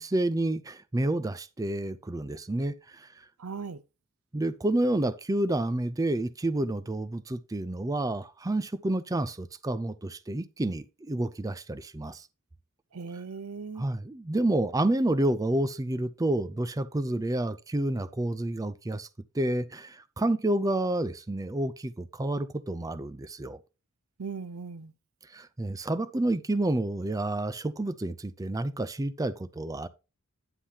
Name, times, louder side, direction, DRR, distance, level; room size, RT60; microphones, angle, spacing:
voice 1, 0.0-3.1 4.3-12.3 13.8-19.1 19.3-23.6 25.3-29.9, right 1 dB, 15° right, 0.4 m, -29 dB
voice 2, 3.4-3.8 12.9-13.9 24.2-24.9, right 5 dB, 80° right, 0.6 m, -38 dB
10.0 x 7.4 x 2.8 m
head